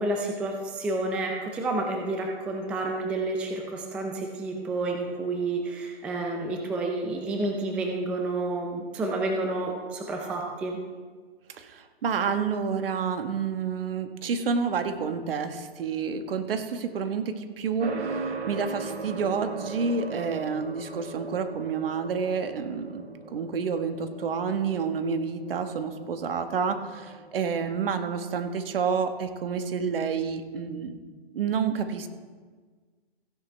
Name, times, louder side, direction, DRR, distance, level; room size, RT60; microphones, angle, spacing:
voice 1, 0.0-10.8, right 2 dB, 5° right, 1 dB, 0.4 m, -30 dB
voice 2, 11.5-30.9 31.3-32.1, right 6 dB, 60° right, 8 dB, 1.3 m, -29 dB
sound 1, 17.8-27.5, right 3 dB, 85° right, 1.7 m, -39 dB
15.5 x 10.5 x 3.3 m, 1.5 s
hypercardioid pair, 145°, 31 cm